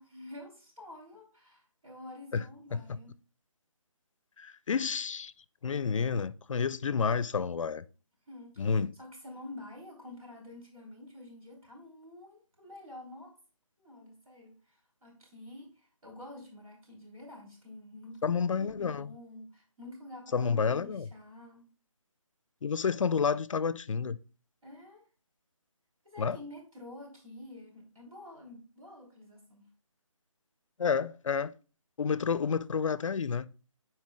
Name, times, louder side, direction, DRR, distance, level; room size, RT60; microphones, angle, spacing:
voice 1, 0.0-3.1 8.3-13.3 13.8-21.6 24.6-25.0 26.0-29.7, left 1 dB, 90° right, 3.3 m, -49 dB
voice 2, 4.4-5.3 5.6-7.8 8.6-8.9 18.2-19.1 20.3-21.1 22.6-24.2 26.2-26.4 30.8-31.5 32.0-33.5, left 6 dB, 70° left, 0.4 m, -30 dB
9.6 x 4.5 x 2.3 m
figure-of-eight pair, 165°, 17 cm